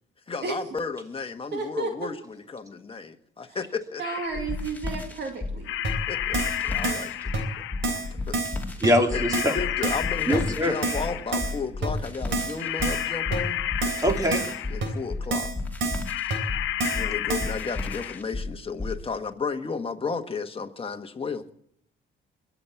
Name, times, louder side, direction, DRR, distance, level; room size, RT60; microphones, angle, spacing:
voice 1, 0.3-4.0 6.1-6.4 6.6-7.5 8.3-8.4 9.1-9.2 9.5-13.6 14.7-15.5 16.9-21.4, left 4 dB, 30° left, 6 dB, 1.4 m, -33 dB
voice 2, 1.5-1.9 4.0-5.7, right 4 dB, 60° right, 4 dB, 2.5 m, -32 dB
sound 1, 4.0-4.6 5.6-8.1 9.1-11.6 12.6-15.0 16.0-18.2, left 13 dB, 90° left, 0.7 m, -32 dB
sound 2, 4.3-19.0, left 2 dB, 10° left, 2.5 m, -34 dB
Keyboard (musical), 5.8-5.9 6.3-6.6 6.8-7.1 7.3-7.4 7.8-8.1 8.3-8.6 8.8-8.9 9.3-9.6 9.8-10.1 10.3-10.4 10.8-11.1 11.3-11.5 11.8-11.9 12.3-12.5 12.8-13.1 13.3-13.4 13.8-14.0 14.3-14.5 14.8-14.9 15.3-15.5 15.8-16.0 16.3-16.4 16.8-17.0 17.3-17.5, right 3 dB, 80° right, 3.6 m, -28 dB
voice 3, 8.8-9.5 10.3-10.8 14.0-14.4, equal, 15° right, 3 dB, 2.8 m, -23 dB
22.0 x 7.3 x 8.3 m, 0.72 s
cardioid pair, 90°, 20 cm